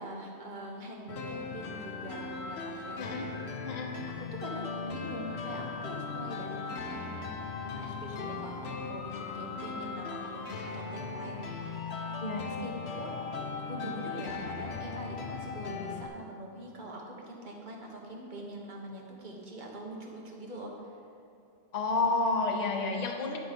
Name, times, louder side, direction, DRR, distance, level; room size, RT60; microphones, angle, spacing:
voice 1, 0.0-3.2 4.2-7.3 7.6-12.1 12.4-13.2 13.7-20.9, right 1 dB, 45° right, -1 dB, 1.2 m, -43 dB
sound 1, 1.1-16.1, left 5 dB, 75° left, 0.9 m, -38 dB
voice 2, 21.7-23.4, left 3 dB, 40° left, 3 dB, 0.8 m, -30 dB
11.0 x 3.9 x 5.2 m, 2.6 s
omnidirectional pair, 1.2 m